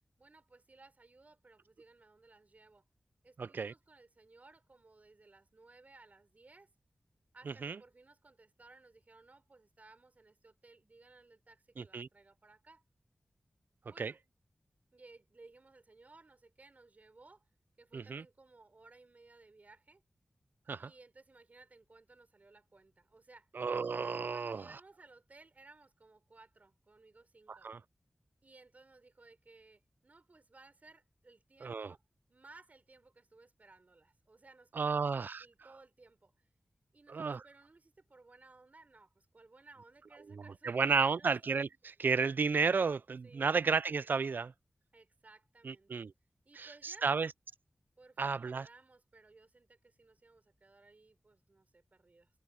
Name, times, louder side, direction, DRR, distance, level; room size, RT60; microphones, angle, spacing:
voice 1, 0.2-2.8 3.2-6.7 7.3-12.8 13.9-14.2 14.9-17.5 17.8-20.0 20.8-23.5 24.2-27.7 28.4-32.0 32.3-36.5 36.9-41.4 43.2-43.6 44.9-46.1 46.4-47.1 48.0-52.3, right 3 dB, 50° right, 4.8 m, -60 dB
voice 2, 3.4-3.7 7.5-7.8 11.8-12.1 14.0-14.1 17.9-18.2 20.7-20.9 23.5-24.6 27.5-27.8 31.6-31.9 34.7-35.4 37.1-37.4 40.3-44.5 45.6-46.1 46.6-47.3 48.2-48.7, right 5 dB, 70° right, 0.4 m, -33 dB
wide cardioid pair, 70°, 3 cm